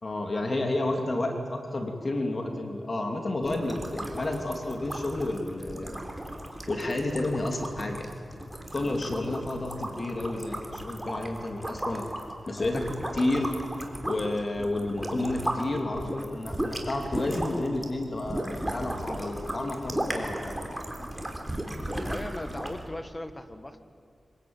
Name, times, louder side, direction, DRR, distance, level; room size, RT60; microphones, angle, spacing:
voice 1, 0.0-6.0 6.7-8.1 8.7-12.0 12.5-12.9 13.1-13.5 14.0-20.6, left 2 dB, 45° left, 3 dB, 3.1 m, -30 dB
sound 1, 3.4-15.6 15.9-22.8, right 1 dB, 10° right, 3.7 m, -35 dB
voice 2, 8.8-9.2 12.6-12.8 21.9-23.8, left 1 dB, 20° left, 9 dB, 1.5 m, -38 dB
25.5 x 18.0 x 9.0 m, 2.5 s
cardioid pair, 60°, 0 cm